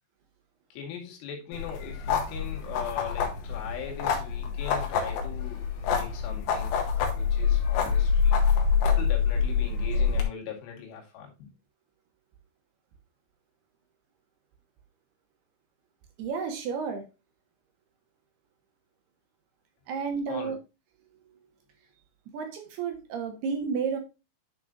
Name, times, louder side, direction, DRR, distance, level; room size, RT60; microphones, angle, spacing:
voice 1, 0.7-6.8 7.1-8.4 8.8-11.3 20.3-20.6, left 7 dB, 90° left, 0 dB, 4.7 m, -40 dB
sound 1, 1.5-10.2, left 6 dB, 70° left, 3.7 m, -26 dB
voice 2, 16.2-17.0 19.9-20.6 22.3-24.0, right 5 dB, 70° right, 5 dB, 3.0 m, -31 dB
11.0 x 5.9 x 2.5 m, 0.27 s
omnidirectional pair, 5.5 m